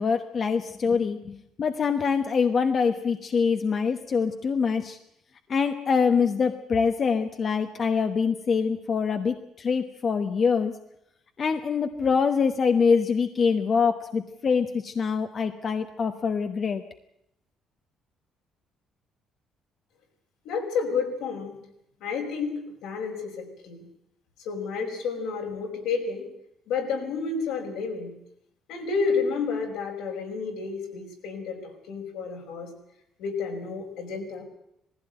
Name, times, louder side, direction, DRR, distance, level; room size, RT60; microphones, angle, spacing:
voice 1, 0.0-5.0 5.5-10.7 11.4-16.8, left 5 dB, 40° left, 7 dB, 1.1 m, -24 dB
voice 2, 20.4-21.6 22.0-23.8 24.4-26.3 26.7-28.1 28.7-32.7 33.2-34.4, left 5 dB, 85° left, 1 dB, 5.1 m, -30 dB
19.0 x 15.5 x 9.1 m, 0.77 s
cardioid pair, 115°, 0 cm